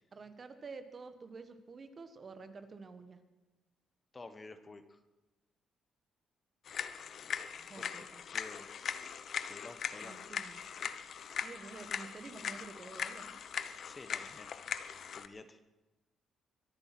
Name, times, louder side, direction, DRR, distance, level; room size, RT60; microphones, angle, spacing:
voice 1, 0.1-3.2 7.6-8.2 10.0-10.6 11.4-13.4, right 4 dB, 40° right, 9 dB, 1.6 m, -49 dB
voice 2, 4.1-5.0 7.7-10.3 13.8-14.5 15.1-15.6, left 3 dB, 25° left, 10 dB, 1.1 m, -52 dB
sound 1, 6.7-15.3, left 7 dB, 60° left, 0.8 m, -40 dB
24.0 x 9.2 x 6.0 m, 1.1 s
cardioid pair, 90°, 0 cm